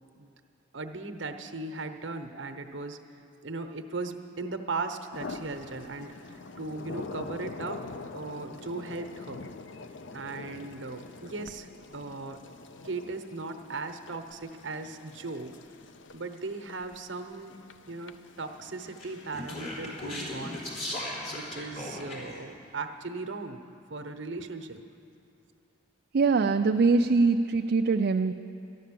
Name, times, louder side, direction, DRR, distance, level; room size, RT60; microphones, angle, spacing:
voice 1, 0.7-3.0 3.4-9.5 10.1-12.4 12.8-15.6 16.1-17.6 17.9-21.0 21.3-24.8, right 3 dB, 70° right, 7 dB, 0.9 m, -38 dB
sound 1, 5.1-21.0, left 3 dB, 75° left, 0.6 m, -45 dB
Speech, 19.0-22.4, left 1 dB, 40° left, 3.4 m, -37 dB
voice 2, 26.1-28.3, right 4 dB, 55° right, 5 dB, 0.4 m, -23 dB
13.0 x 11.5 x 7.6 m, 2.7 s
head